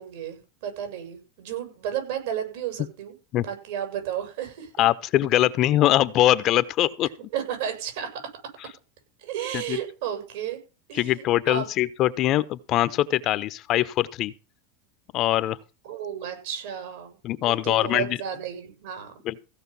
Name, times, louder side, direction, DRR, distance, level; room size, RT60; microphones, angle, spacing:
voice 1, 0.0-3.1 3.4-4.7 7.3-8.1 9.2-10.6 10.9-11.7 15.8-17.2 17.5-19.1, right 9 dB, 70° right, 6.9 m, -33 dB
voice 2, 4.8-7.1 9.5-9.8 10.9-14.3 15.1-15.6 17.2-18.2 19.2-19.4, left 14 dB, 45° left, 0.9 m, -22 dB
16.0 x 5.5 x 6.9 m
supercardioid pair, 120°, 0 cm